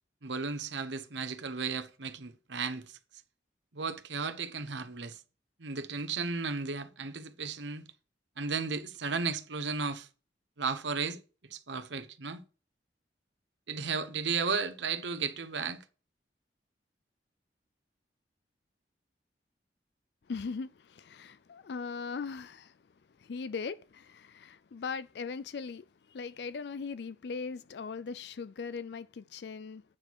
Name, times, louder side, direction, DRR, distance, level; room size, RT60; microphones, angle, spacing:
voice 1, 0.2-3.0 3.7-5.2 5.6-7.9 8.4-10.1 10.6-11.2 11.5-12.4 13.7-15.8, right 5 dB, 85° right, 1.0 m, -34 dB
voice 2, 20.3-22.8 23.2-29.8, left 5 dB, 65° left, 0.4 m, -39 dB
8.9 x 6.2 x 4.6 m
head